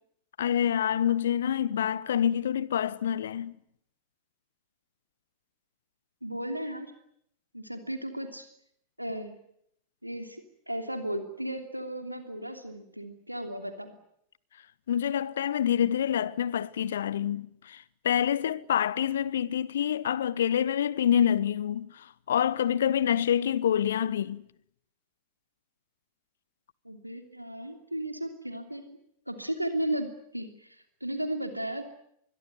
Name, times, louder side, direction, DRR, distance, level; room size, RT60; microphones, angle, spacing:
voice 1, 0.4-3.6 14.9-24.4, left 9 dB, 65° left, 1.0 m, -27 dB
voice 2, 6.2-6.9 7.5-8.5 9.0-9.3 10.0-14.0 26.8-29.0 29.3-31.8, right 1 dB, 90° right, 2.9 m, -35 dB
25.0 x 22.0 x 9.4 m
figure-of-eight pair, 90°, 0 cm